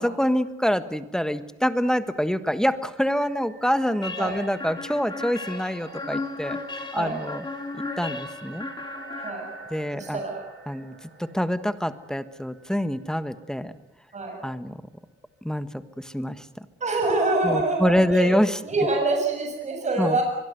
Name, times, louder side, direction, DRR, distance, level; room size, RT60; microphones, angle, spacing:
voice 1, 0.0-6.6 6.9-7.4 8.0-8.7 9.7-10.2 10.7-10.9 11.2-13.7 14.4-14.8 15.4-15.7 16.1-16.4 17.4-18.5 20.0-20.2, equal, 5° left, 12 dB, 1.4 m, -25 dB
sound 1, 2.8-13.6, right 4 dB, 65° right, 6.8 m, -48 dB
sound 2, 4.0-9.9, left 3 dB, 25° left, 3.7 m, -35 dB
voice 2, 9.9-10.5 14.1-14.4 16.8-18.3 18.6-20.2, right 2 dB, 35° right, 2 dB, 7.1 m, -25 dB
24.0 x 22.5 x 8.1 m, 0.93 s
cardioid pair, 90°, 20 cm